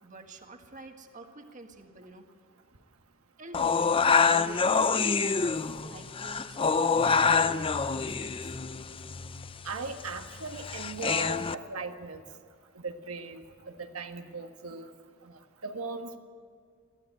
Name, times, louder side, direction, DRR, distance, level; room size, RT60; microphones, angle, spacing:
voice 1, 0.0-2.3 3.4-8.6, right 2 dB, 35° right, 5 dB, 1.7 m, -47 dB
sound 1, 3.5-11.6, left 5 dB, 25° left, 0.5 m, -26 dB
voice 2, 9.6-12.2 12.7-14.9 15.2-16.2, right 3 dB, 90° right, 5 dB, 1.5 m, -38 dB
22.5 x 15.0 x 9.3 m, 2.2 s
head